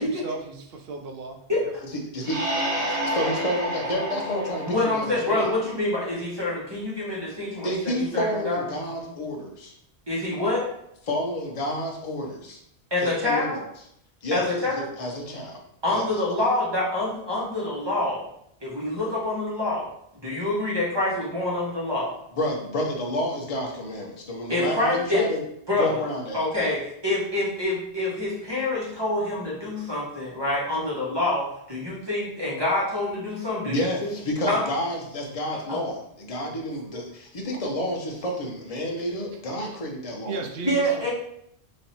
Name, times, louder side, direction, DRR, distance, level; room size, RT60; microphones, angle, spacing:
voice 1, 0.0-1.7 40.2-41.1, right 3 dB, 65° right, 4 dB, 0.8 m, -36 dB
voice 2, 1.5-1.8 4.6-8.6 10.1-10.7 12.9-13.6 14.3-14.9 15.8-18.2 18.6-19.9 20.1-22.1 24.5-25.2 25.7-26.0 26.3-34.1 34.5-34.7 35.7-35.8 40.6-41.1, left 2 dB, 25° right, -5 dB, 1.1 m, -26 dB
sound 1, 2.2-5.8, right 1 dB, 85° right, 1.2 m, -30 dB
voice 3, 2.7-5.5 7.6-9.7 11.1-12.6 13.0-13.6 14.2-15.6 15.9-16.1 22.4-25.4 25.8-26.4 33.6-40.4, left 1 dB, 35° left, 0 dB, 0.7 m, -30 dB
3.2 x 2.7 x 4.2 m, 0.73 s
omnidirectional pair, 1.1 m